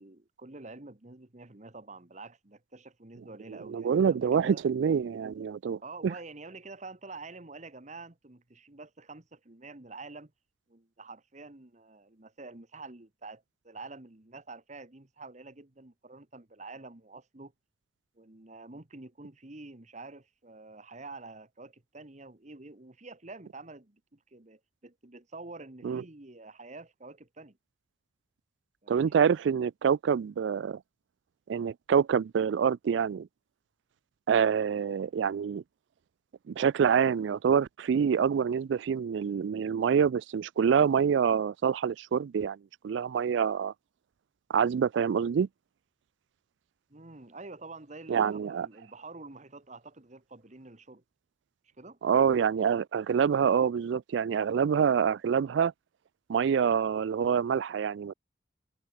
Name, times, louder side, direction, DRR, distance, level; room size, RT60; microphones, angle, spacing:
voice 1, 0.0-4.6 5.8-10.3 10.7-17.5 18.1-27.6 28.8-29.1 46.9-51.0 51.8-52.0, right 3 dB, 40° right, 1.5 m, -47 dB
voice 2, 3.7-5.8 25.8-26.0 28.9-30.8 31.5-33.3 34.3-35.6 36.5-42.6 42.8-43.7 44.5-45.5 48.1-48.7 52.0-55.7 56.3-58.1, right 7 dB, 70° right, 0.3 m, -26 dB
head